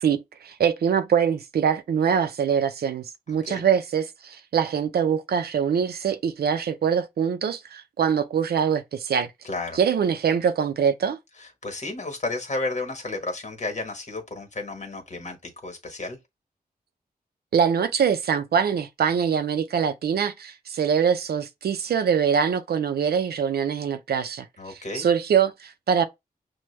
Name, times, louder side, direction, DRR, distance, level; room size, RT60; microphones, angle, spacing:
voice 1, 0.0-9.3 9.7-11.2 17.5-26.0, right 7 dB, 85° right, 0.5 m, -24 dB
voice 2, 9.4-9.8 11.4-16.2 24.6-25.1, left 3 dB, 45° left, 1.3 m, -32 dB
6.0 x 2.2 x 3.2 m
wide cardioid pair, 85°, 16 cm